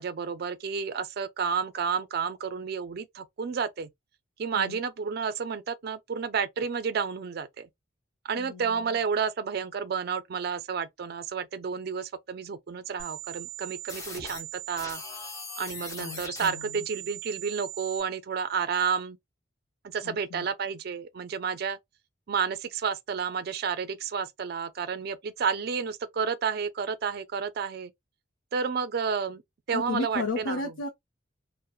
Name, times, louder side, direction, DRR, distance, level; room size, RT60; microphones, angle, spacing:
voice 1, 0.0-3.9 4.4-7.7 8.2-15.0 15.6-19.2 19.8-21.8 22.3-27.9 28.5-29.4 29.7-30.6, right 6 dB, 50° right, 0.3 m, -31 dB
voice 2, 8.4-9.0 16.0-16.9 20.0-20.5 29.7-30.9, left 3 dB, 85° left, 0.5 m, -34 dB
sound 1, 13.0-18.0, right 3 dB, 15° left, 0.7 m, -40 dB
3.0 x 2.0 x 2.2 m
head